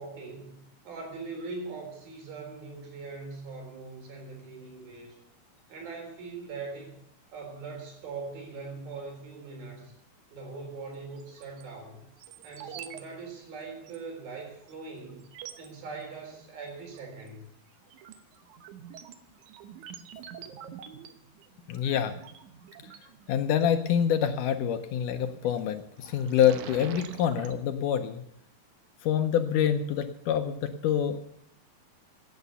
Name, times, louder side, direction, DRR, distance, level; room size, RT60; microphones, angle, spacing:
voice 1, 0.0-5.2 5.7-7.0 7.3-9.9 10.3-12.0 12.4-15.2 15.6-17.5 20.1-20.4, right 4 dB, 85° right, 2 dB, 5.7 m, -41 dB
sound 1, 11.2-11.6 12.2-13.0 13.3-13.4 13.8-14.0 14.7-14.8 15.2-15.7 16.9-17.3 17.7-23.6 25.2-25.6 26.0-27.5, right 9 dB, 65° right, 2.2 m, -46 dB
voice 2, 21.7-22.2 22.8-22.9 23.3-28.2 29.0-31.2, left 9 dB, 75° left, 7 dB, 2.1 m, -26 dB
17.0 x 9.2 x 6.7 m, 0.73 s
omnidirectional pair, 4.1 m